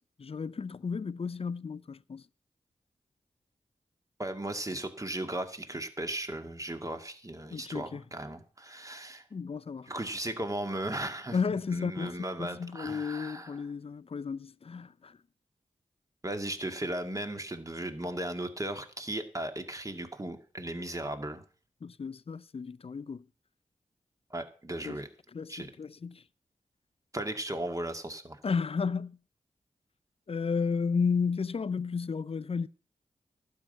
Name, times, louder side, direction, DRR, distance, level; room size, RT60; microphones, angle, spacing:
voice 1, 0.0-2.2 7.5-8.0 9.3-9.9 11.3-15.2 21.8-23.3 24.8-25.0 25.3-26.2 28.4-29.2 30.3-32.7, left 5 dB, 50° left, 0.5 m, -33 dB
voice 2, 4.2-9.2 9.9-11.4 11.7-13.5 16.2-21.4 24.3-25.1 25.5-25.7 27.1-28.4, right 1 dB, 25° right, 2.0 m, -36 dB
12.0 x 5.8 x 9.2 m
cardioid pair, 45°, 13 cm